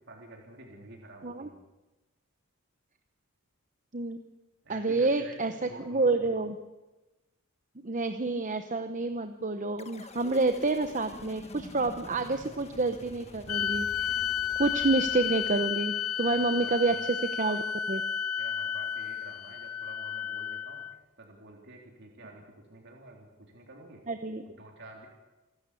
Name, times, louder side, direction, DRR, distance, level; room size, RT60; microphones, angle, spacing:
voice 1, 0.1-1.6 4.6-6.3 16.2-17.0 18.4-22.4 22.7-24.0 24.4-25.1, right 2 dB, 55° right, 0 dB, 3.5 m, -49 dB
voice 2, 4.7-6.6 7.8-14.1 14.6-17.6 17.9-18.0 24.1-24.4, right 3 dB, 35° right, 8 dB, 0.9 m, -28 dB
sound 1, 9.8-16.2, left 1 dB, 30° left, 1.4 m, -48 dB
sound 2, 13.5-21.0, left 9 dB, 85° left, 0.6 m, -32 dB
27.0 x 12.5 x 8.4 m, 1.1 s
head